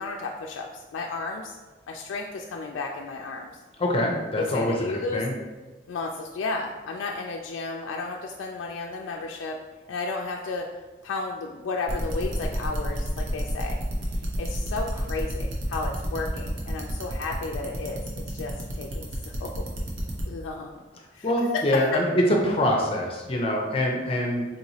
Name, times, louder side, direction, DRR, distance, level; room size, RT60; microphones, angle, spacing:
voice 1, 0.0-1.6 1.9-3.6 4.4-5.2 5.9-9.6 9.9-10.7 11.0-13.8 14.4-18.0 18.3-19.5 20.3-20.7 21.1-21.6, left 3 dB, 85° left, 1 dB, 0.3 m, -33 dB
voice 2, 3.8-5.3 21.2-24.5, left 1 dB, 30° left, 0 dB, 0.5 m, -24 dB
sound 1, 11.9-20.2, equal, 80° right, 0.8 m, -32 dB
4.1 x 2.9 x 2.7 m, 1.2 s
head